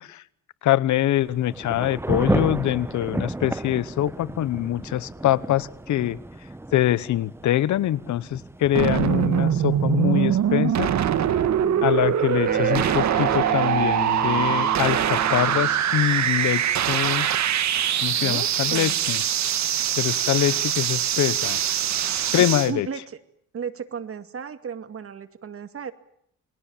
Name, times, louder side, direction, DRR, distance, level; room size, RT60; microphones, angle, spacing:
voice 1, 0.6-6.2 6.7-10.9 11.8-17.3 18.0-19.2 20.0-21.6 22.3-22.9, left 13 dB, 70° left, 20 dB, 1.0 m, -24 dB
Thunder / Rain, 1.2-15.6, right 1 dB, 10° right, 1.0 m, -34 dB
sound 1, 8.7-22.7, right 10 dB, 65° right, 1.9 m, -23 dB
voice 2, 11.5-11.9 18.2-19.0 22.4-23.2 23.5-25.9, right 7 dB, 50° right, 10 dB, 2.4 m, -35 dB
sound 2, 12.5-15.8, right 4 dB, 30° right, 2.0 m, -31 dB
28.5 x 22.5 x 7.3 m, 0.71 s
cardioid pair, 90°, 30 cm